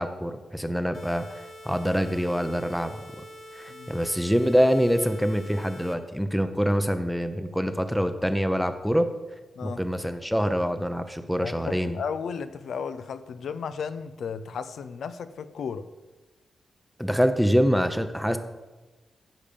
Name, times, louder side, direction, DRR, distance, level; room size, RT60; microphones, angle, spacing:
voice 1, 0.0-3.0 3.5-9.1 9.6-12.0 17.0-18.4, equal, ahead, 9 dB, 0.7 m, -25 dB
sound 1, 0.9-5.9, equal, 45° left, 1.8 m, -45 dB
voice 2, 11.4-15.8, left 6 dB, 80° left, 12 dB, 0.6 m, -34 dB
15.5 x 5.1 x 6.9 m, 1.2 s
wide cardioid pair, 170°, 0 cm